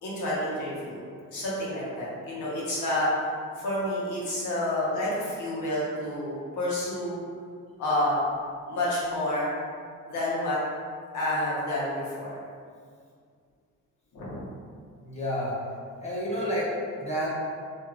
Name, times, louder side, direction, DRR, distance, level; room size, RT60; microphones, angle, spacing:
voice 1, 0.0-3.3 3.5-7.2 7.8-8.2 8.7-9.5 10.1-10.6 11.1-12.4 14.1-14.4, left 1 dB, 80° left, -7 dB, 1.1 m, -29 dB
voice 2, 15.0-15.6 16.0-17.3, equal, 20° left, -8 dB, 1.0 m, -30 dB
3.1 x 2.7 x 2.4 m, 2.1 s
cardioid pair, 90°, 30 cm